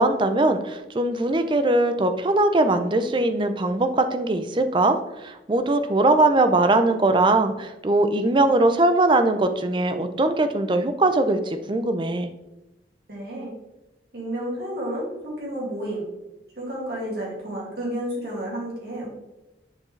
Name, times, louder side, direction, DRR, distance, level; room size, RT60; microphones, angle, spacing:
voice 1, 0.0-12.3, right 2 dB, 25° right, 8 dB, 0.4 m, -21 dB
voice 2, 13.1-13.5 14.1-16.1 16.6-19.1, right 1 dB, 60° right, -4 dB, 2.3 m, -31 dB
7.2 x 4.6 x 3.2 m, 0.97 s
head